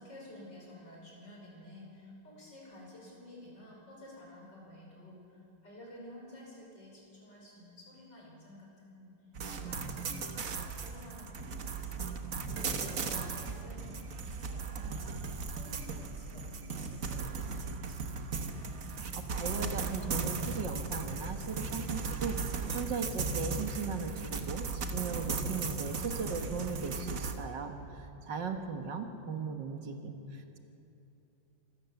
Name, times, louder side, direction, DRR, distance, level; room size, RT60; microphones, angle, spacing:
voice 1, 0.0-9.1 9.5-12.1 12.6-15.2 15.5-18.5, left 1 dB, 65° left, -2 dB, 6.1 m, -52 dB
sound 1, 9.3-27.3, right 4 dB, 50° right, 1.5 m, -37 dB
voice 2, 19.1-30.6, right 5 dB, 70° right, 5 dB, 2.0 m, -38 dB
sound 2, 19.9-22.0 22.4-22.5, right 2 dB, 30° left, 7.6 m, -47 dB
26.0 x 16.5 x 7.1 m, 2.9 s
omnidirectional pair, 2.1 m